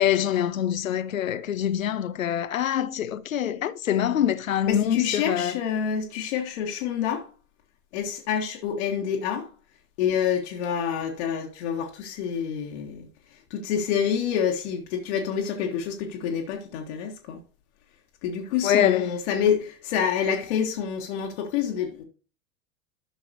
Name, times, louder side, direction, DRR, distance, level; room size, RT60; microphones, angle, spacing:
voice 1, 0.0-5.6 18.6-19.2, left 10 dB, 75° left, 0.6 m, -25 dB
voice 2, 4.6-7.3 7.9-9.5 10.0-13.1 13.5-17.4 18.2-22.0, left 8 dB, 55° left, 1.4 m, -27 dB
12.5 x 6.1 x 2.9 m
figure-of-eight pair, 80°, 41 cm